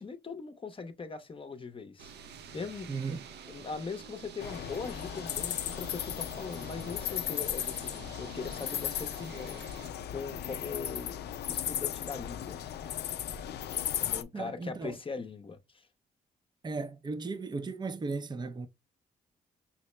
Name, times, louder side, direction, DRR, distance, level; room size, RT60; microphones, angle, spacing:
voice 1, 0.0-2.1 2.5-3.0 3.5-9.6 10.1-11.2 11.5-12.6 14.0-15.9, left 4 dB, 30° left, 0.7 m, -40 dB
sound 1, 2.0-9.9, right 6 dB, 75° right, 0.6 m, -49 dB
voice 2, 2.9-3.3 14.3-15.0 16.6-18.7, right 4 dB, 25° right, 0.6 m, -36 dB
sound 2, 4.4-14.2, left 10 dB, 75° left, 0.5 m, -36 dB
5.7 x 2.1 x 3.1 m
cardioid pair, 70°, 17 cm